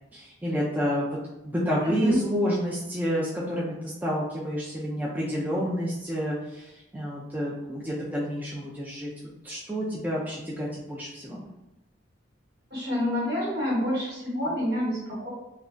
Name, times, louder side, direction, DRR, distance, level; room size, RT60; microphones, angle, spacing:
voice 1, 0.1-1.1 1.4-9.1 9.4-11.5, equal, 10° right, -6 dB, 0.3 m, -29 dB
voice 2, 1.8-2.2 12.7-15.3, left 1 dB, 55° right, -6 dB, 1.2 m, -28 dB
3.1 x 2.2 x 2.4 m, 0.94 s
head